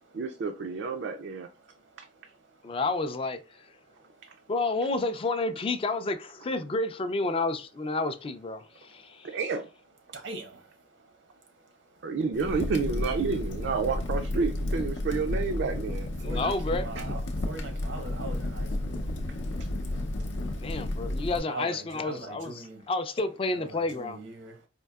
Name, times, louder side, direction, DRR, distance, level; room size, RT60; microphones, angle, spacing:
voice 1, 0.1-1.5 2.0-2.3 9.2-9.7 12.0-16.1 19.6-19.7, right 4 dB, 65° right, 0.3 m, -30 dB
voice 2, 1.7-2.2 2.5-2.6 3.9-4.4 8.9-9.3 10.1-12.0 16.2-19.3 19.7-19.8 20.2-20.8 21.5-22.8 23.6-24.6, right 2 dB, 90° right, 0.8 m, -43 dB
voice 3, 2.6-3.4 4.5-9.4 16.2-16.9 20.6-24.2, left 3 dB, 30° left, 0.3 m, -30 dB
Crackle, 12.3-21.4, left 1 dB, 80° left, 0.5 m, -32 dB
4.4 x 2.7 x 2.3 m
head